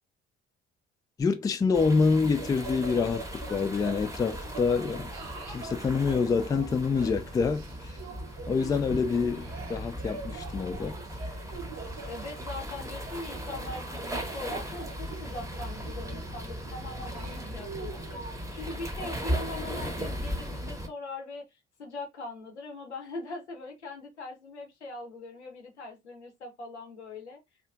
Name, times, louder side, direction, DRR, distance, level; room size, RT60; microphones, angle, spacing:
voice 1, 1.2-5.1 5.5-7.9 8.5-10.9, left 5 dB, 10° left, 0.3 m, -27 dB
sound 1, 1.7-20.9, equal, 10° right, 0.8 m, -37 dB
sound 2, 1.7-18.4, right 6 dB, 50° right, 0.7 m, -45 dB
voice 2, 12.1-27.4, left 2 dB, 90° left, 0.6 m, -41 dB
2.8 x 2.4 x 2.3 m
figure-of-eight pair, 45°, 33 cm